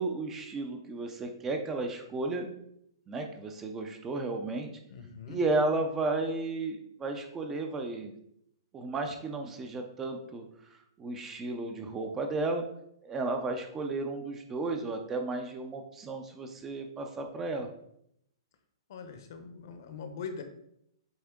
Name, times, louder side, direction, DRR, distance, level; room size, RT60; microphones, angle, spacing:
voice 1, 0.0-2.5 3.1-4.7 5.3-8.1 8.7-10.5 11.0-12.6 13.0-17.7, right 2 dB, 10° right, 4 dB, 0.4 m, -33 dB
voice 2, 4.9-5.4 18.9-20.4, left 5 dB, 45° left, 8 dB, 0.8 m, -42 dB
8.0 x 3.4 x 3.6 m, 0.73 s
hypercardioid pair, 175°, 3 cm